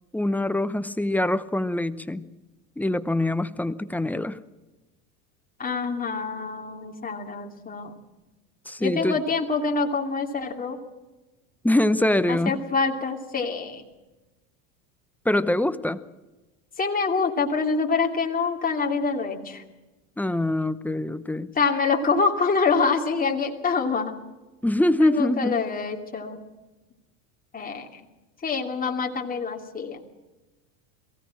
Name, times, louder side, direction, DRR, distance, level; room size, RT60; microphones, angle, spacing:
voice 1, 0.1-2.2 2.8-4.4 8.7-9.2 11.6-12.6 15.2-16.0 20.2-21.5 24.6-25.6, left 1 dB, 5° left, 12 dB, 0.8 m, -24 dB
voice 2, 5.6-8.0 8.8-10.8 12.3-13.8 16.8-19.6 21.6-24.1 25.0-26.4 27.5-28.0 28.4-30.0, left 4 dB, 20° left, 1 dB, 2.7 m, -26 dB
23.0 x 16.5 x 7.6 m, 1.1 s
supercardioid pair, 105°, 43 cm